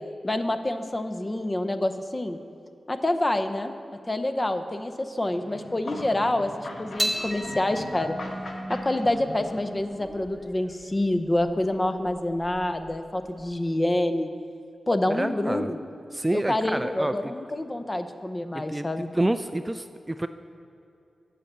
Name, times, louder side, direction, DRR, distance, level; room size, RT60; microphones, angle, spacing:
voice 1, 0.2-2.4 2.9-3.7 4.1-8.2 8.8-14.3 14.9-15.8 16.3-19.1, left 1 dB, 25° left, 8 dB, 0.6 m, -27 dB
sound 1, 5.3-10.0, left 2 dB, 65° left, 1.1 m, -41 dB
sound 2, 7.0-13.5, equal, ahead, 1.2 m, -36 dB
voice 2, 15.1-15.7 16.1-17.3 18.5-18.9 19.1-20.3, right 1 dB, 15° right, 10 dB, 0.3 m, -28 dB
8.3 x 5.6 x 7.3 m, 2.7 s
cardioid pair, 70°, 0 cm